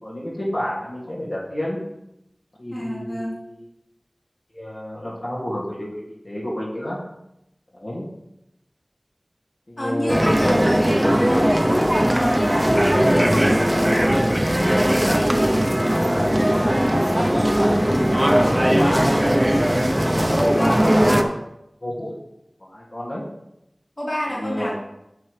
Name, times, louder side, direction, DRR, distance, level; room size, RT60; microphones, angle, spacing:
voice 1, 0.0-1.8 2.6-3.6 4.5-5.9 6.2-7.0 7.7-8.0 9.7-10.9 15.9-19.1 20.0-21.4 21.8-22.2 22.6-23.3 24.3-24.7, equal, 70° left, -7 dB, 2.5 m, -29 dB
voice 2, 2.7-3.4 9.8-14.1 20.3-20.8 24.0-24.7, equal, 45° left, -6 dB, 2.5 m, -29 dB
sound 1, 10.1-21.2, equal, 15° right, 0.7 m, -19 dB
8.3 x 7.1 x 3.4 m, 0.85 s
wide cardioid pair, 45°, 0 cm